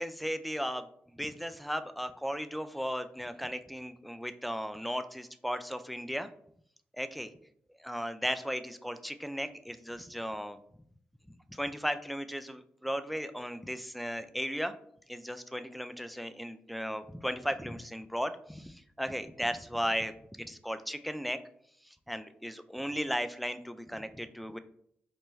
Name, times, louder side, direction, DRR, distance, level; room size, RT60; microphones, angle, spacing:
voice 1, 0.0-6.3 6.9-7.3 7.8-10.6 11.5-14.7 15.1-21.4 21.8-24.6, equal, ahead, 11 dB, 0.3 m, -36 dB
4.2 x 2.2 x 3.1 m, 0.67 s
supercardioid pair, 40°, 5 cm